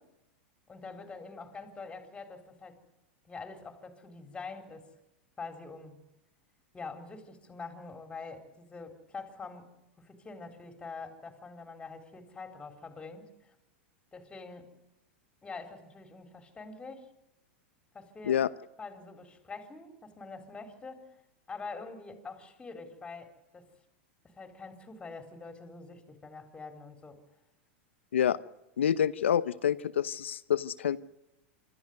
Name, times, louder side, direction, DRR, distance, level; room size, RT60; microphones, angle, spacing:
voice 1, 0.7-2.8 3.2-4.9 5.4-6.0 6.7-13.6 14.1-14.7 15.4-17.1 17.9-18.4 18.8-21.0 21.5-23.7 24.2-27.2, left 4 dB, 15° left, 6 dB, 4.1 m, -45 dB
voice 2, 28.8-31.0, left 9 dB, 85° left, 15 dB, 0.9 m, -27 dB
25.5 x 14.0 x 9.4 m, 0.92 s
hypercardioid pair, 110°, 6 cm